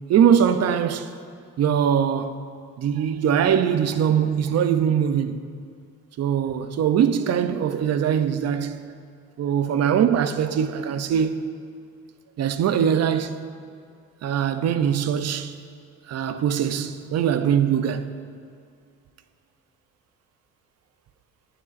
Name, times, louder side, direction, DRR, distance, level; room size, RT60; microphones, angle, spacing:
voice 1, 0.1-1.1 1.6-2.3 2.8-5.4 6.2-8.8 9.4-11.4 12.4-13.4 14.2-15.5 16.1-18.1, right 8 dB, 55° right, 0.5 m, -22 dB
11.0 x 8.6 x 2.5 m
cardioid pair, 90°, 30 cm